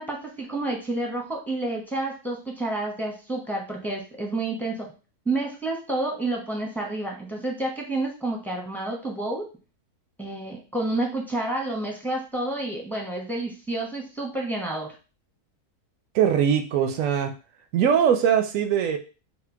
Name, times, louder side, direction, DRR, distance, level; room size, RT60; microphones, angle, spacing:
voice 1, 0.0-4.9 5.3-9.4 10.2-14.9, right 2 dB, ahead, 0 dB, 0.6 m, -29 dB
voice 2, 16.1-17.3 17.7-19.0, right 8 dB, 70° right, 7 dB, 0.8 m, -21 dB
4.4 x 2.2 x 4.4 m, 0.34 s
omnidirectional pair, 1.7 m